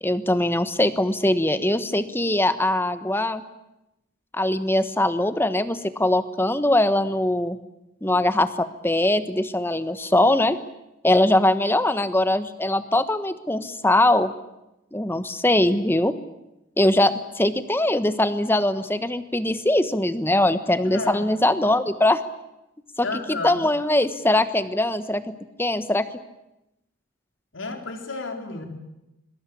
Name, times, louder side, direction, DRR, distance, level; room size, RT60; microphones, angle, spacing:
voice 1, 0.0-3.4 4.3-7.6 8.0-10.6 11.0-14.3 14.9-16.1 16.8-22.2 23.0-26.1, left 1 dB, 10° left, 12 dB, 1.1 m, -21 dB
voice 2, 20.8-21.2 23.0-23.6 27.5-28.6, left 3 dB, 65° left, 4 dB, 4.1 m, -32 dB
26.0 x 22.0 x 8.5 m, 0.92 s
head